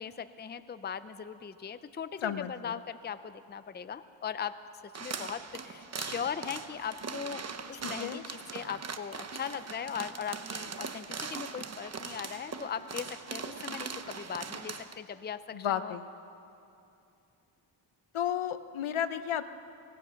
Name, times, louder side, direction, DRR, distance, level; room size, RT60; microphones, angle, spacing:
voice 1, 0.0-4.6 4.8-15.9, left 7 dB, 20° left, 12 dB, 0.5 m, -39 dB
voice 2, 2.2-2.8 7.8-8.2 15.5-16.1 18.1-19.5, left 9 dB, 75° left, 11 dB, 1.0 m, -33 dB
sound 1, 4.9-14.9, right 5 dB, 30° right, 0.9 m, -40 dB
24.5 x 19.0 x 5.8 m, 2.7 s
cardioid pair, 100°, 49 cm